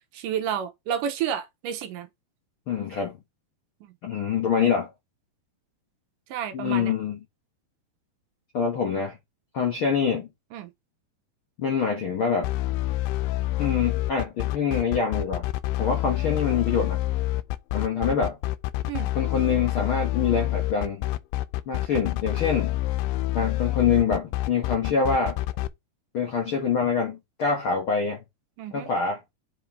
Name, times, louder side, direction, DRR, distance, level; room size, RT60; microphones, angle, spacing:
voice 1, 0.1-2.1 6.3-6.9 10.5-10.7 18.9-19.1 28.6-28.9, right 9 dB, 75° right, 2.2 m, -30 dB
voice 2, 2.7-3.2 4.0-4.9 6.5-7.2 8.5-9.2 9.5-10.3 11.6-12.5 13.6-15.5 15.8-17.0 17.7-18.4 19.1-21.1 21.7-22.7 23.3-25.4 26.1-28.2 28.7-29.2, left 6 dB, 65° left, 1.2 m, -25 dB
sound 1, 12.4-25.7, left 15 dB, 80° left, 2.2 m, -27 dB
7.5 x 4.6 x 3.5 m
omnidirectional pair, 4.1 m